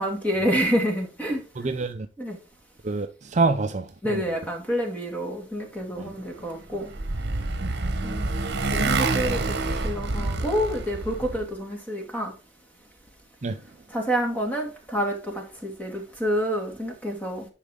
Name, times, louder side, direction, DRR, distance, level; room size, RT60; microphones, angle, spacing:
voice 1, 0.0-1.7 2.2-2.4 4.0-6.9 8.0-8.3 8.7-9.4 9.8-12.3 13.9-17.5, equal, 10° left, 2.2 m, -28 dB
voice 2, 1.6-2.1 2.8-4.4 6.0-6.1 7.6-7.7 13.4-13.6, right 3 dB, 40° right, 0.5 m, -27 dB
Motorcycle, 6.4-11.5, right 3 dB, 60° right, 1.1 m, -27 dB
10.0 x 5.1 x 3.7 m
head